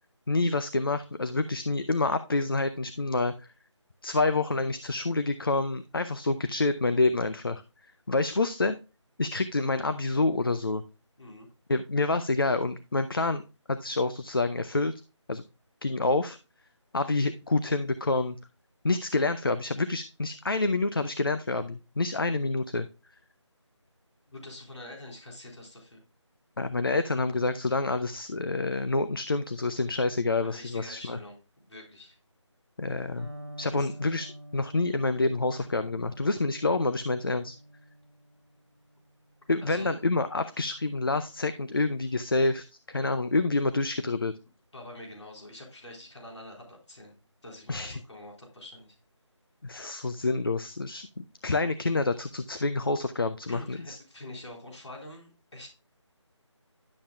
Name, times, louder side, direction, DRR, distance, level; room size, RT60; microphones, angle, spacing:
voice 1, 0.3-3.5 4.0-7.6 8.1-8.8 9.2-10.8 11.7-13.4 13.7-14.9 15.3-15.4 15.8-16.4 16.9-18.4 18.8-22.9 26.6-31.2 32.8-33.3 33.6-37.6 39.5-44.3 47.7-48.0 49.6-54.0, left 3 dB, 45° left, 11 dB, 0.5 m, -27 dB
voice 2, 24.3-26.0 30.4-32.2 33.7-34.0 39.6-40.0 44.7-47.1 47.4-49.0 53.5-55.7, left 1 dB, 65° left, 0 dB, 4.1 m, -46 dB
Electric guitar, 33.2-41.0, equal, 15° left, 1.2 m, -48 dB
10.5 x 7.0 x 2.3 m, 0.30 s
figure-of-eight pair, 175°, 16 cm